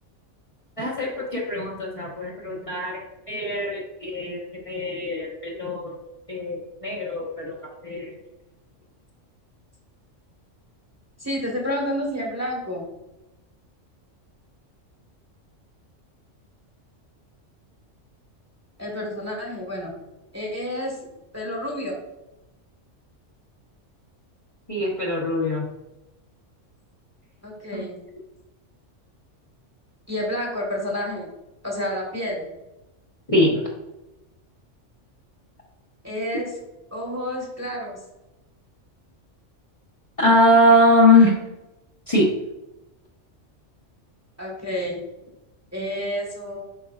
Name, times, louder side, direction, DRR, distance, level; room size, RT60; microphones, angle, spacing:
voice 1, 0.8-3.0 3.3-5.9 6.3-7.6 7.8-8.1 24.7-25.7 27.7-27.8 33.3-33.6 40.2-41.3 42.1-42.3, left 1 dB, 30° left, -4 dB, 1.3 m, -21 dB
voice 2, 11.2-12.9 18.8-19.9 20.3-21.0 21.3-22.0 27.4-28.0 30.1-31.3 31.6-32.5 36.0-36.6 36.9-38.0 44.4-45.0 45.7-46.7, equal, 15° right, -2 dB, 1.5 m, -29 dB
8.1 x 6.0 x 2.4 m, 0.95 s
omnidirectional pair, 1.3 m